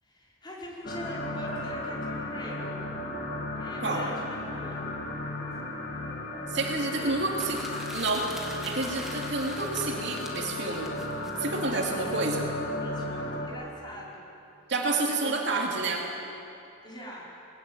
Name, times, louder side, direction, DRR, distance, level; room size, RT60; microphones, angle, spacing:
voice 1, 0.0-2.9 3.5-4.9 6.7-7.1 11.9-12.0 12.8-14.3 15.0-15.4 16.8-17.3, equal, 20° left, -4 dB, 5.1 m, -43 dB
sound 1, 0.8-13.5, left 1 dB, 45° left, 2.9 m, -35 dB
voice 2, 6.5-7.7 7.9-8.3 8.7-10.9 11.4-12.5 14.7-16.1, right 3 dB, 55° right, 0 dB, 2.7 m, -29 dB
sound 2, 7.2-11.9, equal, ahead, 1.9 m, -44 dB
21.0 x 20.0 x 9.1 m, 2.8 s
head